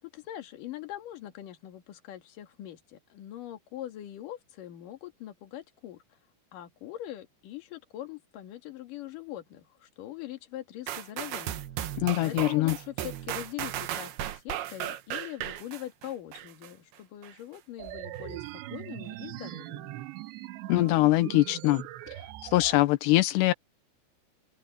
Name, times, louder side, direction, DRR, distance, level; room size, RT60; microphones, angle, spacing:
voice 1, 0.0-6.0 6.5-19.9, left 13 dB, 55° left, 3.3 m, -42 dB
sound 1, 10.9-16.7 17.2-17.3, right 12 dB, 70° right, 3.0 m, -36 dB
voice 2, 12.0-12.7 20.7-21.8 22.5-23.5, left 17 dB, 85° left, 3.0 m, -23 dB
sound 2, 17.8-22.8, right 15 dB, 85° right, 3.2 m, -41 dB
open air
omnidirectional pair, 4.9 m